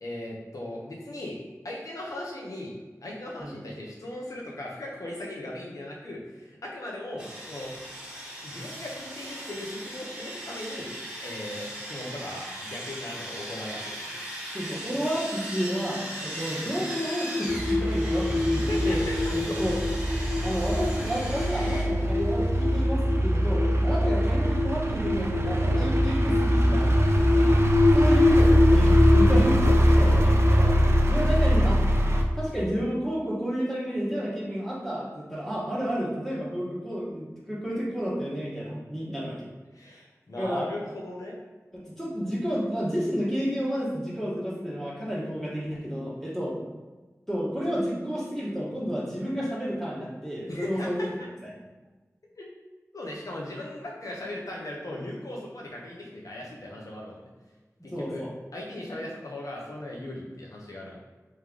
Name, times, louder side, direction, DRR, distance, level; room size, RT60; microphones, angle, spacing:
voice 1, 0.0-1.4 1.6-2.7 3.0-7.7 8.4-10.9 11.2-13.9 18.6-19.3 30.0-30.2 39.7-41.4 50.5-51.3 52.4-52.5 52.9-57.2 57.8-58.2 58.5-61.0, left 1 dB, 80° left, -2 dB, 1.0 m, -38 dB
Sawing, 7.2-21.8, right 1 dB, 15° right, 1.3 m, -38 dB
voice 2, 14.5-19.0 19.3-19.8 20.4-27.6 27.9-30.8 31.1-31.8 32.4-39.5 40.3-40.7 41.7-46.6 47.3-51.0 51.4-51.5 57.9-58.3, equal, 5° left, -7 dB, 1.5 m, -31 dB
sound 1, 16.8-33.1, left 3 dB, 50° left, 0.6 m, -27 dB
sound 2, 17.5-32.2, equal, 50° right, 0.5 m, -23 dB
3.3 x 3.2 x 3.8 m, 1.2 s
wide cardioid pair, 50°, 6 cm